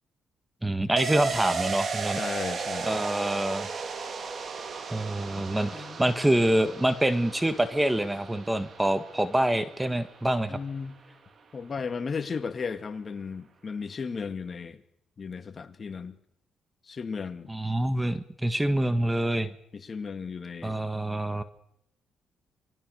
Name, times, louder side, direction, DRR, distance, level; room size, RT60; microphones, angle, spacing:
voice 1, 0.6-2.2 2.9-3.7 4.9-10.6 17.5-19.5 20.6-21.4, right 1 dB, 10° right, 11 dB, 1.6 m, -26 dB
sound 1, 1.0-10.4 10.7-10.8, right 5 dB, 50° right, 3.4 m, -35 dB
voice 2, 2.2-3.0 5.4-6.2 10.5-11.0 11.5-14.8 15.2-16.1 16.8-17.5 19.7-20.8, left 5 dB, 40° left, 9 dB, 2.3 m, -35 dB
26.5 x 21.0 x 6.7 m, 0.74 s
cardioid pair, 90°, 0 cm